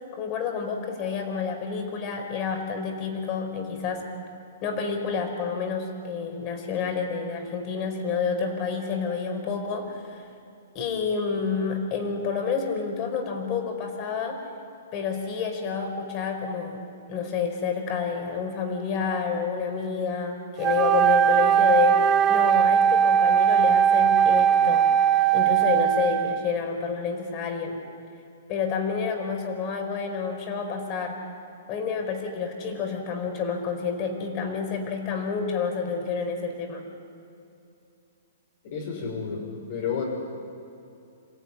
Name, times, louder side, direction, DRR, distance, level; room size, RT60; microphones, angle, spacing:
voice 1, 0.1-4.1 4.6-10.2 10.7-14.4 14.9-24.9 25.3-27.8 28.5-31.2 31.7-36.8, left 5 dB, 35° left, 5 dB, 5.0 m, -29 dB
Wind instrument woodwind instrument, 20.6-26.5, right 9 dB, 25° right, 0.8 m, -20 dB
voice 2, 38.6-40.0, left 6 dB, 50° left, -1 dB, 5.5 m, -31 dB
26.5 x 15.5 x 10.0 m, 2.6 s
hypercardioid pair, 140°, 0 cm